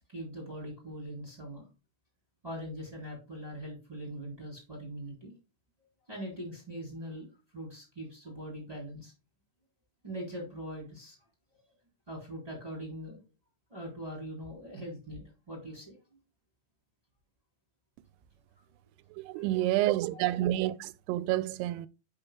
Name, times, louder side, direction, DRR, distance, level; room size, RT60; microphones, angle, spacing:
voice 1, 0.1-1.7 2.4-5.3 6.1-7.3 7.5-9.1 10.0-11.2 11.5-11.6 12.1-13.2 13.7-15.9 19.4-19.5 20.1-20.2, equal, 10° right, 3.0 m, -42 dB
voice 2, 19.1-21.9, right 15 dB, 90° right, 2.6 m, -29 dB
10.5 x 5.1 x 2.2 m
omnidirectional pair, 4.6 m